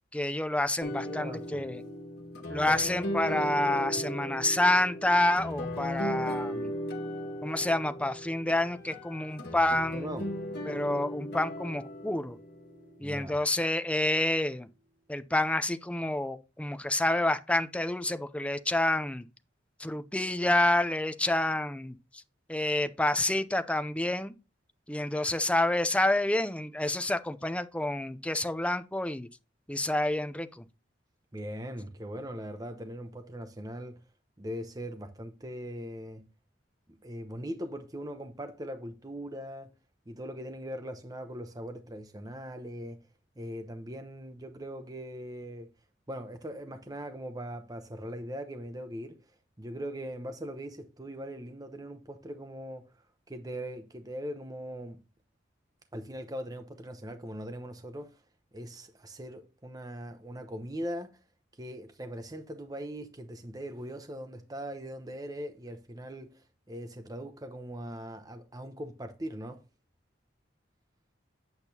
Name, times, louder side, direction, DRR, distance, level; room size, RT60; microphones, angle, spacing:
voice 1, 0.1-1.8 2.5-6.7 7.4-10.1 10.7-12.4 13.0-14.7 15.1-19.3 19.8-22.0 22.5-24.3 24.9-29.3 29.7-30.6, left 1 dB, 5° left, 0.5 m, -28 dB
sound 1, 0.8-13.3, equal, 60° left, 1.7 m, -37 dB
voice 2, 1.1-1.6 9.9-10.3 13.0-13.4 31.3-34.0 34.4-36.3 37.0-39.7 40.1-43.0 43.4-45.7 46.1-49.2 49.6-52.9 53.3-55.0 55.9-58.2 58.5-61.1 61.6-69.6, equal, 20° right, 0.8 m, -40 dB
8.8 x 8.0 x 2.8 m
head